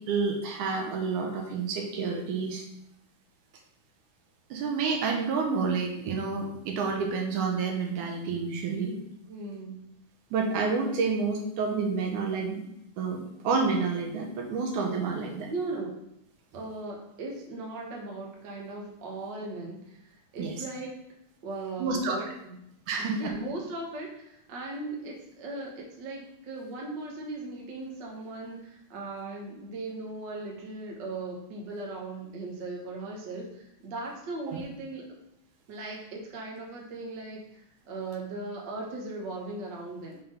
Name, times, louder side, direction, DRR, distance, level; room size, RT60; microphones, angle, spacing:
voice 1, 0.1-2.7 4.5-9.0 10.3-12.6 13.0-15.5 20.4-20.5 21.8-22.2 22.9-23.3 34.5-34.6, right 4 dB, 80° right, 2 dB, 2.3 m, -29 dB
voice 2, 9.3-9.8 15.5-15.9 16.5-21.0 21.4-22.5 23.0-35.1 35.7-40.2, right 2 dB, 55° right, -1 dB, 1.3 m, -38 dB
5.9 x 3.8 x 5.1 m, 0.77 s
omnidirectional pair, 3.6 m